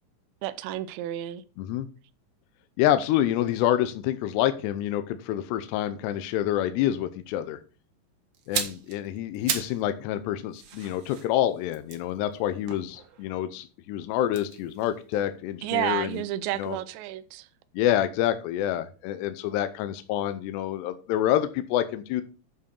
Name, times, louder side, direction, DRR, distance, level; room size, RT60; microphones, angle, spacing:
voice 1, 0.4-1.4 15.6-17.5, right 14 dB, 90° right, 2.9 m, -31 dB
voice 2, 2.8-7.6 8.5-16.2 16.6-16.8 17.7-22.2, left 12 dB, 80° left, 2.8 m, -27 dB
sound 1, 8.3-9.9 10.2-13.4 14.2-16.3 16.5-16.7, right 7 dB, 65° right, 2.1 m, -36 dB
11.5 x 4.7 x 5.3 m
omnidirectional pair, 5.0 m